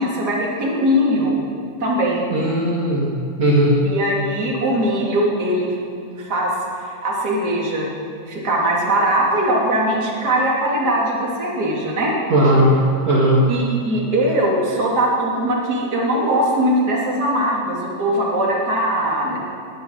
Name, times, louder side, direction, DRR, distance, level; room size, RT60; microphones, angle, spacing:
voice 1, 0.0-1.4 1.8-2.2 3.8-5.7 6.2-7.9 8.3-12.1 13.5-19.4, right 1 dB, 30° right, -4 dB, 3.2 m, -20 dB
voice 2, 2.3-3.1 3.4-3.8 12.3-12.7 13.1-13.4, right 1 dB, 55° right, -4 dB, 3.0 m, -16 dB
20.0 x 8.6 x 7.9 m, 2.3 s
omnidirectional pair, 3.7 m